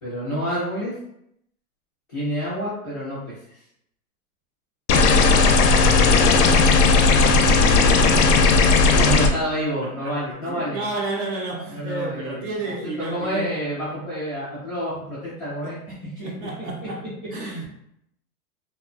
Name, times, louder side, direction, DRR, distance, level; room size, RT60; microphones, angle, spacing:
voice 1, 0.0-0.9 2.1-3.4 6.6-10.8 11.7-15.8 16.1-16.7 17.4-17.7, equal, 15° left, -16 dB, 0.3 m, -29 dB
sound 1, 4.9-9.3, left 4 dB, 80° left, 0.6 m, -16 dB
voice 2, 5.1-5.6 8.0-8.2 9.8-13.5 15.6-15.8 16.2-17.0 17.3-17.7, right 3 dB, 35° right, -1 dB, 0.5 m, -31 dB
2.8 x 2.1 x 2.4 m, 0.76 s
supercardioid pair, 155°, 45 cm